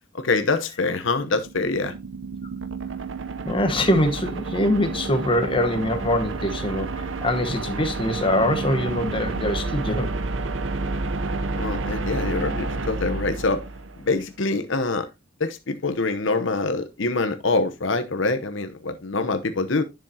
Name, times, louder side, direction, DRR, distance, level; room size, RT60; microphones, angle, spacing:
voice 1, 0.1-1.9 11.5-13.6 14.0-15.1 15.4-19.8, left 3 dB, 70° left, 0.9 m, -25 dB
sound 1, 1.3-14.1, right 3 dB, 70° right, 0.8 m, -30 dB
voice 2, 3.4-6.9 7.2-10.1, left 1 dB, 25° left, 1.2 m, -23 dB
10.5 x 7.0 x 2.8 m
head